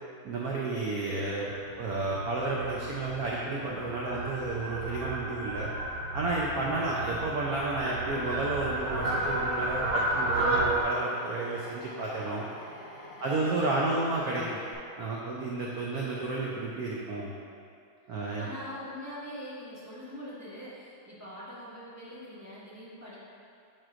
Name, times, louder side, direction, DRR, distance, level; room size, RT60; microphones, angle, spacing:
voice 1, 0.2-1.5 1.8-5.7 6.1-12.5 13.2-14.6 15.0-17.3 18.1-18.5, right 2 dB, 85° right, -4 dB, 0.8 m, -32 dB
Fowl, 1.4-10.8, right 2 dB, 55° right, 0.8 m, -32 dB
Drill, 8.8-14.8, left 2 dB, 65° left, 1.4 m, -47 dB
voice 2, 13.6-14.1 18.4-23.2, equal, 10° right, -10 dB, 0.9 m, -43 dB
9.2 x 4.6 x 2.5 m, 2.4 s
omnidirectional pair, 2.4 m